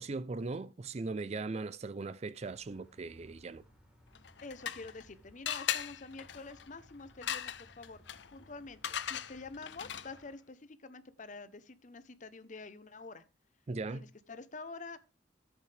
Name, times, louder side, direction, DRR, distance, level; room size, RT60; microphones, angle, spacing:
voice 1, 0.0-3.6 13.7-14.0, right 3 dB, 35° right, 0.4 m, -39 dB
sound 1, 2.4-10.3, equal, 5° right, 3.7 m, -62 dB
sound 2, 4.1-5.1 5.5-10.3, left 10 dB, 80° left, 0.7 m, -39 dB
voice 2, 4.4-8.0 8.3-13.2 13.9-15.0, left 3 dB, 45° left, 0.8 m, -47 dB
14.0 x 8.2 x 3.4 m
head